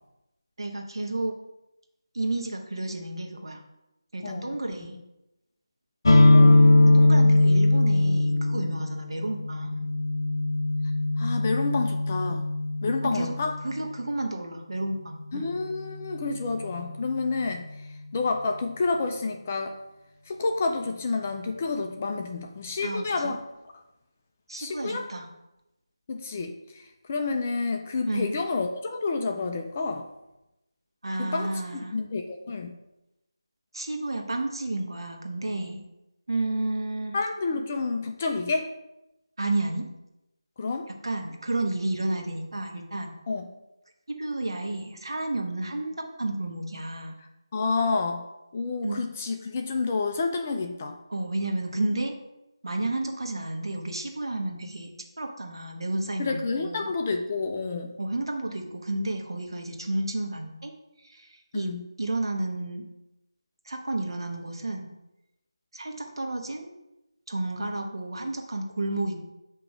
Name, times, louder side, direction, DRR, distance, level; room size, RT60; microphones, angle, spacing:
voice 1, 0.6-1.3 2.1-3.6 4.1-5.0 6.9-9.9 13.1-13.3 13.6-15.5 22.8-23.4 24.5-25.2 28.1-28.3 31.0-31.9 33.7-35.8 36.3-37.1 39.4-39.8 41.0-43.1 44.1-47.2 48.8-49.0 51.1-52.1 52.6-54.9 55.2-56.9 58.0-60.7 61.0-61.7 62.0-62.8 63.6-64.9 65.7-66.7 67.3-69.2, right 2 dB, 65° right, 2 dB, 1.2 m, -31 dB
sound 1, 6.0-13.7, left 2 dB, 50° left, 0.7 m, -20 dB
voice 2, 6.3-6.7 11.2-12.4 12.8-13.5 15.3-17.6 18.1-19.8 20.3-23.4 24.6-25.1 26.1-30.1 31.2-31.5 31.9-32.8 37.1-38.7 40.6-40.9 43.3-43.5 47.5-48.2 48.5-51.0 56.2-57.9 61.5-61.9, left 3 dB, 20° left, 4 dB, 0.4 m, -29 dB
8.0 x 3.0 x 4.8 m, 0.92 s
figure-of-eight pair, 165°, 3 cm